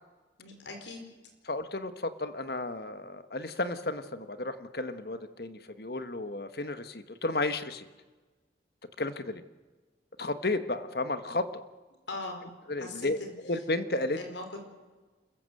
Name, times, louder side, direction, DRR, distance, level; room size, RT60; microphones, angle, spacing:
voice 1, 0.4-1.0 12.1-12.4 12.8-13.3 14.2-14.6, left 2 dB, 90° left, 4 dB, 4.9 m, -40 dB
voice 2, 1.5-7.9 9.0-9.4 10.2-11.6 12.7-13.2 13.4-14.2, left 2 dB, 60° left, 11 dB, 1.3 m, -33 dB
27.5 x 15.0 x 7.8 m, 1.3 s
head